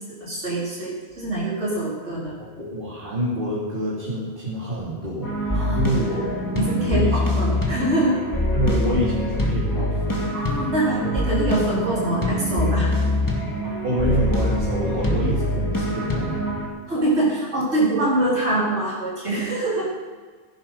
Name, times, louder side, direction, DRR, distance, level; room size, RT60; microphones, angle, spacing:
voice 1, 0.2-2.3 5.5-5.8 6.6-8.2 10.3-12.9 14.8-14.9 16.9-19.9, right 1 dB, 80° right, -6 dB, 4.4 m, -24 dB
voice 2, 2.4-6.3 6.9-7.2 8.5-10.3 10.8-11.1 13.8-16.4, equal, 50° right, -8 dB, 3.2 m, -27 dB
sound 1, 5.2-16.7, left 1 dB, 15° left, 2.1 m, -24 dB
16.0 x 10.5 x 5.7 m, 1.5 s
omnidirectional pair, 1.1 m